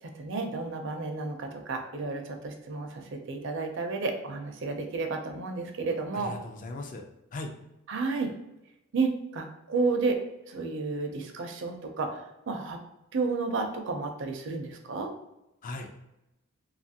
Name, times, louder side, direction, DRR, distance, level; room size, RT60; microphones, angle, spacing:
voice 1, 0.0-6.3 7.9-8.3 8.9-10.2 10.5-12.8 13.1-15.1, right 3 dB, 60° right, 4 dB, 0.5 m, -31 dB
voice 2, 6.1-7.0 7.3-7.5 15.6-16.0, left 2 dB, 40° left, 3 dB, 0.4 m, -38 dB
2.8 x 2.4 x 2.7 m, 0.90 s
head